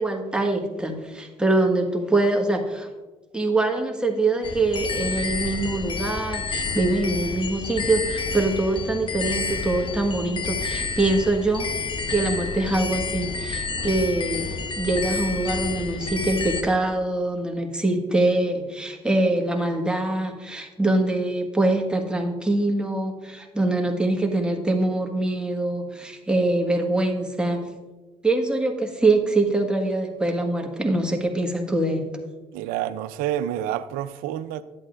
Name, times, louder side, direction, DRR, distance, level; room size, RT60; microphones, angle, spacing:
voice 1, 0.0-2.9 3.3-11.7 12.1-27.6 28.2-32.1, right 2 dB, 5° right, 1.4 m, -24 dB
sound 1, 4.4-16.6, left 4 dB, 35° left, 0.8 m, -30 dB
voice 2, 32.5-34.6, right 11 dB, 80° right, 0.4 m, -28 dB
10.5 x 8.4 x 2.5 m
supercardioid pair, 65°, 14 cm